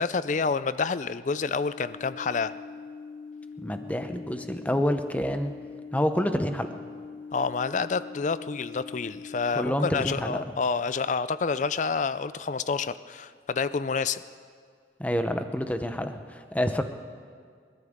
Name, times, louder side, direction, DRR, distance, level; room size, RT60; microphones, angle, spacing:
voice 1, 0.0-2.6 7.3-14.2, left 5 dB, 40° left, 15 dB, 0.4 m, -28 dB
sound 1, 1.5-9.5, left 5 dB, 80° left, 1.0 m, -43 dB
voice 2, 3.6-5.5 5.9-6.7 9.5-10.5 15.0-16.8, equal, 10° left, 8 dB, 0.7 m, -28 dB
29.5 x 13.5 x 3.6 m, 2.1 s
head